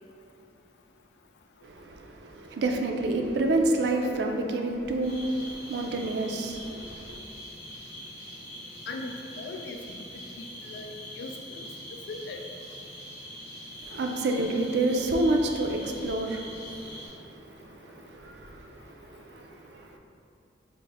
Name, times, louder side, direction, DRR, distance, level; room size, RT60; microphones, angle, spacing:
voice 1, 1.6-7.2 13.8-20.0, right 2 dB, 70° right, 3 dB, 0.4 m, -29 dB
sound 1, 5.0-17.1, equal, 15° left, 1.3 m, -43 dB
voice 2, 8.9-10.0 10.4-11.7 12.1-12.4, left 3 dB, 70° left, 3 dB, 0.3 m, -39 dB
4.8 x 2.1 x 3.3 m, 2.6 s
head